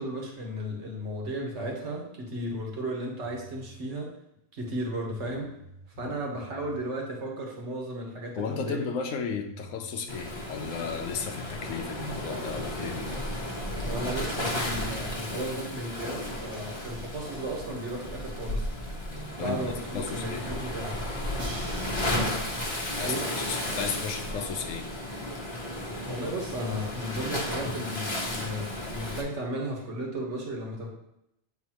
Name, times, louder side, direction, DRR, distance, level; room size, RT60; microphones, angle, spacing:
voice 1, 0.0-4.1 4.5-5.5 5.9-8.9 13.8-18.7 19.4-21.0 23.0-23.3 26.1-30.9, right 1 dB, 65° right, -1 dB, 1.6 m, -35 dB
sound 1, 3.2-3.8 4.8-4.9 5.2-6.9 9.0-9.1 9.4-10.6 11.3-13.0, left 1 dB, 60° left, 1.0 m, -49 dB
voice 2, 8.4-13.3 18.9-20.6 22.8-24.9, left 5 dB, 90° left, 5 dB, 1.0 m, -35 dB
Waves surf, 10.1-29.2, left 1 dB, 25° left, 0.9 m, -34 dB
Crash cymbal, 21.4-24.3, right 1 dB, 30° right, 0.8 m, -46 dB
8.2 x 4.0 x 3.0 m, 0.82 s
omnidirectional pair, 1.3 m